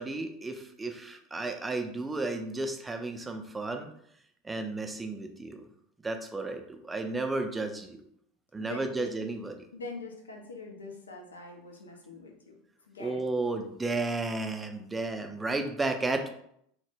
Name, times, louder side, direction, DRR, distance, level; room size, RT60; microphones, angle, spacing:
voice 1, 0.0-3.9 4.4-5.6 6.0-8.0 8.5-9.6 13.0-16.3, right 2 dB, 15° right, 5 dB, 0.3 m, -33 dB
voice 2, 8.6-9.1 9.7-13.2, left 3 dB, 80° left, 1 dB, 0.5 m, -44 dB
2.1 x 2.1 x 3.2 m, 0.70 s
figure-of-eight pair, 80°, 0 cm